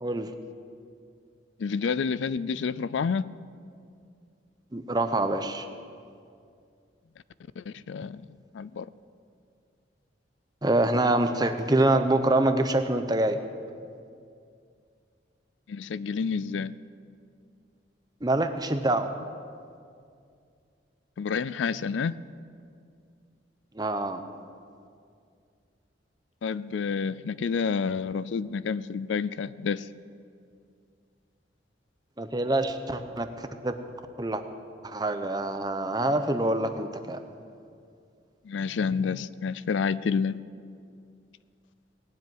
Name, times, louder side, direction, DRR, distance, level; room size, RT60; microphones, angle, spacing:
voice 1, 0.0-0.3 4.7-5.7 10.6-13.4 18.2-19.1 23.7-24.2 32.2-33.7 34.2-34.4 34.8-37.2, right 2 dB, 20° right, 8 dB, 0.8 m, -25 dB
voice 2, 1.6-3.3 7.6-8.2 8.5-8.9 15.7-16.8 21.2-22.2 26.4-29.9 38.4-40.4, left 5 dB, 85° left, 18 dB, 0.4 m, -29 dB
18.5 x 7.6 x 9.5 m, 2.3 s
head